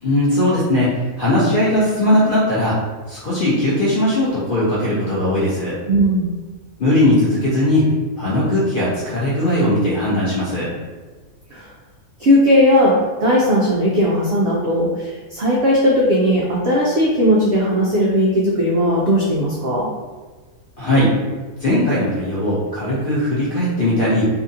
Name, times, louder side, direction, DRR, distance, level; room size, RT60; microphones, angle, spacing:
voice 1, 0.0-2.8 3.1-5.8 6.8-7.9 8.2-10.7 20.8-21.2 21.6-24.3, left 1 dB, 60° left, -8 dB, 0.5 m, -18 dB
voice 2, 5.9-6.3 11.5-11.7 12.2-19.9, equal, 85° right, -5 dB, 0.5 m, -17 dB
2.8 x 2.5 x 2.6 m, 1.4 s
omnidirectional pair, 1.6 m